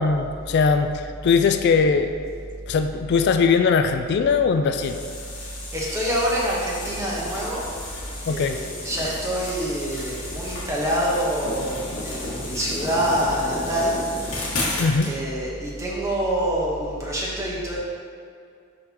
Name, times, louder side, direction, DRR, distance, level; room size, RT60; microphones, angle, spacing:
voice 1, 0.0-2.1 2.7-5.0 8.3-8.6 14.8-15.1, left 5 dB, 50° left, 7 dB, 0.3 m, -20 dB
sound 1, 4.7-15.1, left 2 dB, 75° left, 1.4 m, -33 dB
voice 2, 5.7-7.7 8.3-14.0 15.0-17.8, right 1 dB, 15° right, -5 dB, 1.1 m, -26 dB
9.8 x 4.0 x 2.9 m, 2.3 s
head